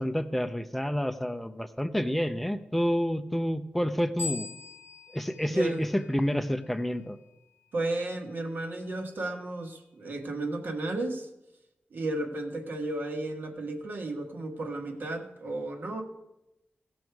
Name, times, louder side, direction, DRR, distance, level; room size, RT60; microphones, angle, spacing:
voice 1, 0.0-4.5 5.1-7.2, equal, 5° left, 9 dB, 0.5 m, -29 dB
sound 1, 4.2-6.7, left 4 dB, 75° left, 0.9 m, -41 dB
voice 2, 5.5-5.8 7.7-11.3 11.9-16.0, right 2 dB, 60° right, 3 dB, 1.4 m, -33 dB
17.0 x 6.4 x 4.7 m, 0.90 s
wide cardioid pair, 170°, 4 cm